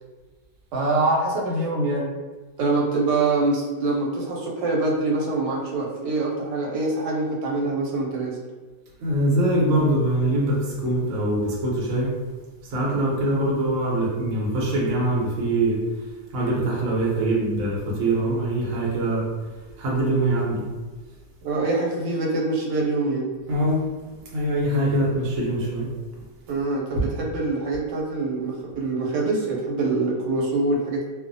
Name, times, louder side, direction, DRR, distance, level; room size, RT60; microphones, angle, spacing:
voice 1, 0.7-2.1 2.6-8.4 21.4-23.3 26.5-31.0, right 2 dB, 85° right, -2 dB, 1.2 m, -24 dB
voice 2, 9.0-12.1 12.6-15.8 16.3-19.3 19.8-20.7 23.5-23.8 24.3-25.9 27.0-27.1, right 1 dB, 60° right, -4 dB, 1.0 m, -23 dB
2.5 x 2.3 x 2.5 m, 1.3 s
omnidirectional pair, 1.8 m